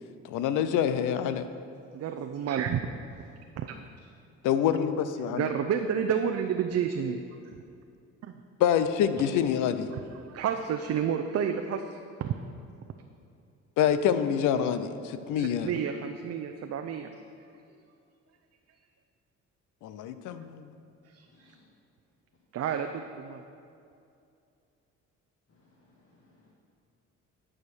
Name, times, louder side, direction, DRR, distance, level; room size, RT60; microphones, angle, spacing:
voice 1, 0.2-1.5 4.4-5.5 8.6-9.9 13.8-15.7 19.8-20.8, left 9 dB, 90° left, 11 dB, 0.6 m, -26 dB
voice 2, 1.9-2.8 3.6-3.9 5.3-7.2 8.2-8.4 9.9-12.3 15.3-17.1 21.1-21.5 22.5-23.4, right 8 dB, 55° right, 6 dB, 0.6 m, -30 dB
voice 3, 21.3-21.6 25.5-26.5, left 2 dB, 50° left, -4 dB, 1.6 m, -63 dB
11.0 x 5.0 x 6.2 m, 2.5 s
cardioid pair, 90°, 30 cm